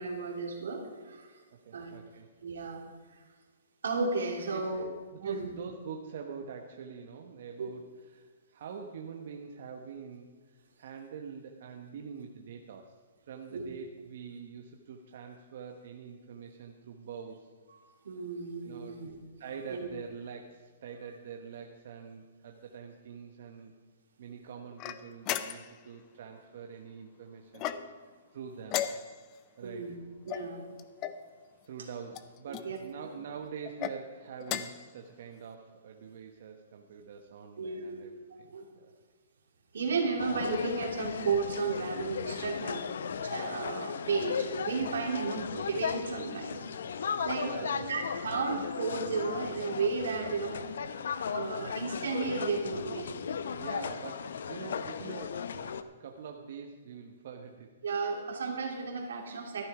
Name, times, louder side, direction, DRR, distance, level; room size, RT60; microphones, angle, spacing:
voice 1, 0.0-1.4 1.7-1.9 2.4-2.8 3.8-4.8 5.2-5.5 7.6-7.7 13.5-13.7 17.7-19.2 19.7-19.9 29.6-29.9 30.2-30.7 32.5-32.8 37.6-38.0 38.5-38.7 39.7-42.9 43.2-46.6 47.0-47.5 47.9-50.9 51.3-53.1 57.8-59.7, right 4 dB, 85° right, 1 dB, 2.8 m, -33 dB
voice 2, 1.5-2.3 4.5-13.0 13.3-17.5 18.6-19.0 19.4-23.7 24.2-28.8 29.6-30.0 31.7-38.9 47.3-48.0 53.5-57.7, right 6 dB, 55° right, 3 dB, 1.1 m, -45 dB
sound 1, 24.8-25.9 27.5-28.1 28.7-29.4 30.3-31.2 32.1-32.7 33.6-34.0 34.4-34.9, left 11 dB, 25° left, 0.6 m, -36 dB
sound 2, 40.2-55.8, left 6 dB, 75° left, 0.7 m, -36 dB
13.5 x 11.0 x 4.9 m, 1.4 s
hypercardioid pair, 160°, 0 cm